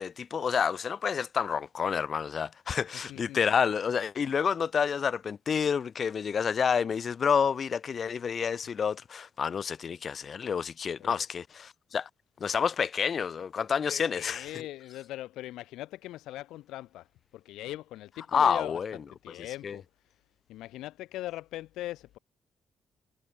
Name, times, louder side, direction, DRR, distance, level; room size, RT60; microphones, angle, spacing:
voice 1, 0.0-12.1 12.4-14.4 18.3-19.0 19.6-19.8, left 6 dB, 50° left, 4.5 m, -29 dB
voice 2, 2.9-3.4 11.0-11.3 13.8-17.1 17.3-18.8 19.2-20.2 20.5-22.2, left 15 dB, 90° left, 4.2 m, -40 dB
cardioid pair, 90°, 0 cm